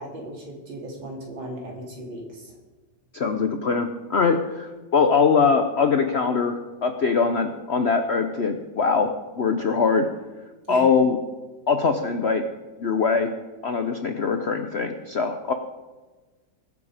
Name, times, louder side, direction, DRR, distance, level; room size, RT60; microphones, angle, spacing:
voice 1, 0.0-2.5 10.7-10.9, right 1 dB, 80° right, -1 dB, 3.5 m, -37 dB
voice 2, 3.1-10.1 10.7-11.2 11.7-12.4 12.8-13.3 13.6-15.5, left 5 dB, 65° left, 6 dB, 0.6 m, -22 dB
21.5 x 7.2 x 4.9 m, 1.2 s
omnidirectional pair, 2.1 m